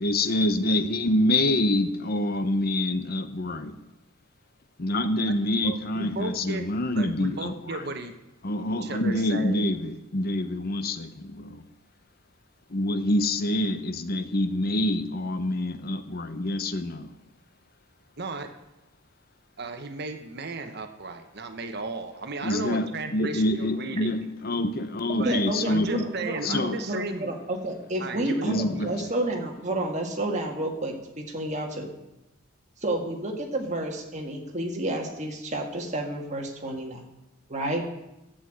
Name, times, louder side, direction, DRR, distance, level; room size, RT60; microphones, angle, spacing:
voice 1, 0.0-3.8 4.8-7.8 8.4-11.6 12.7-17.1 22.4-26.0 26.4-26.8 28.4-28.9, left 1 dB, 45° left, 10 dB, 0.8 m, -26 dB
voice 2, 5.6-8.2 8.6-9.7 18.2-18.5 19.6-24.2 25.2-27.3 28.0-28.9, right 3 dB, 55° right, 7 dB, 1.1 m, -35 dB
voice 3, 25.1-31.9 32.8-37.0 37.5-37.8, right 1 dB, 35° right, 1 dB, 1.9 m, -30 dB
11.0 x 8.2 x 8.0 m, 0.95 s
head